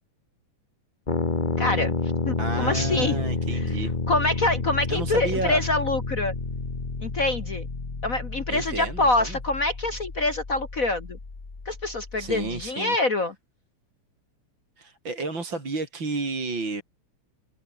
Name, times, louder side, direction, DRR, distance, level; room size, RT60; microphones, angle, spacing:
sound 1, 1.1-12.7, left 3 dB, 25° left, 1.2 m, -30 dB
voice 1, 1.6-2.0 2.2-3.2 3.5-3.7 4.1-6.3 7.0-7.7 8.0-11.2 11.6-13.3, left 2 dB, 40° left, 1.2 m, -25 dB
voice 2, 2.4-3.9 4.9-5.6 8.5-9.4 12.2-13.0 14.8-16.8, right 3 dB, 40° right, 5.7 m, -31 dB
omnidirectional pair, 3.4 m